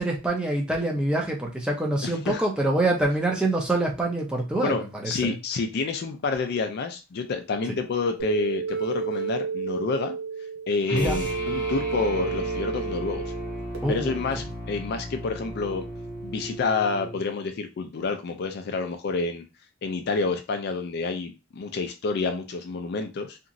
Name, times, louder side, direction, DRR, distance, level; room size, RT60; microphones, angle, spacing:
voice 1, 0.0-5.3 10.9-11.2 13.8-14.2, right 2 dB, 5° right, -1 dB, 0.6 m, -25 dB
voice 2, 2.0-2.4 4.6-10.1 10.7-13.3 13.9-15.8 16.2-19.4 19.8-23.4, left 4 dB, 50° left, 6 dB, 0.4 m, -28 dB
sound 1, 8.2-13.8, right 5 dB, 65° right, 0.9 m, -31 dB
sound 2, 10.9-17.2, equal, 20° right, 1.1 m, -35 dB
2.9 x 2.6 x 2.5 m, 0.28 s
head